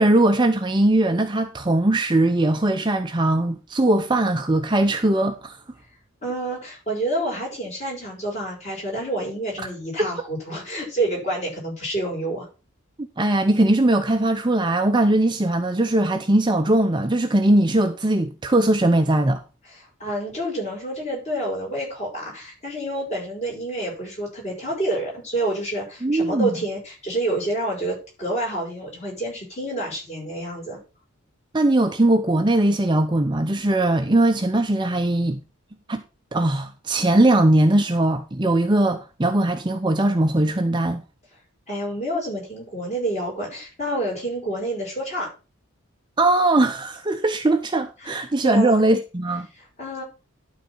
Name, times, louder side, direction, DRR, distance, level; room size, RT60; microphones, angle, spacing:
voice 1, 0.0-5.6 13.2-19.4 26.0-26.6 31.5-35.4 35.9-36.0 36.3-41.0 46.2-49.5, right 1 dB, 20° right, 0.6 m, -20 dB
voice 2, 6.2-12.5 19.7-30.8 41.7-45.3 48.0-48.2 48.4-48.8 49.8-50.0, right 1 dB, 30° left, 5.5 m, -28 dB
12.0 x 4.1 x 6.0 m
head